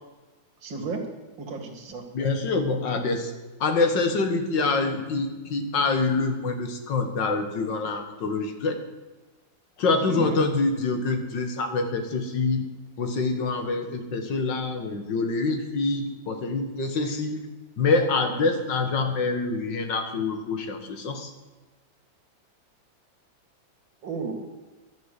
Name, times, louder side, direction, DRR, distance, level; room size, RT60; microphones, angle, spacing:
voice 1, 0.6-1.0 1.4-2.0 10.1-10.4 18.3-18.6 24.0-24.4, right 4 dB, 90° right, 4 dB, 2.6 m, -34 dB
voice 2, 2.1-3.3 3.6-8.8 9.8-12.7 13.0-17.4 17.8-21.3, left 3 dB, 70° left, 6 dB, 2.1 m, -26 dB
12.0 x 9.1 x 7.6 m, 1.2 s
omnidirectional pair, 2.0 m